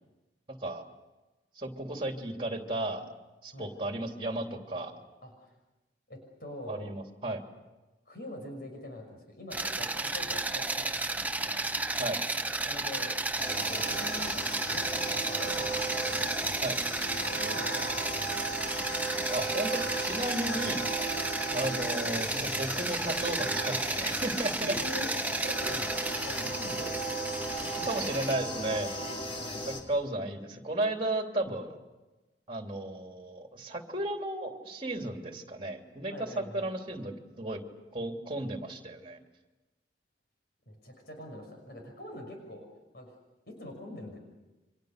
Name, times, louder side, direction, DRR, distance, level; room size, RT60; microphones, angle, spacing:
voice 1, 1.5-3.1 3.4-4.9 6.7-7.4 12.0-12.2 16.6-16.8 19.3-20.8 21.5-24.7 27.8-28.9 29.7-31.8 32.5-37.6 37.9-39.2, right 1 dB, 30° right, 3 dB, 3.2 m, -34 dB
voice 2, 5.2-5.6 6.1-7.0 8.1-11.8 12.7-13.2 13.5-16.3 17.3-18.5 20.5-20.7 21.5-21.7 24.6-28.1 29.3-29.7 36.1-36.7 40.7-42.7 42.9-43.2 43.5-44.2, left 1 dB, 60° left, 3 dB, 5.9 m, -44 dB
sound 1, 9.5-28.3, right 2 dB, 10° right, 0.9 m, -33 dB
sound 2, 13.4-29.8, right 1 dB, 35° left, 3.7 m, -36 dB
29.5 x 25.0 x 6.7 m, 1.1 s
head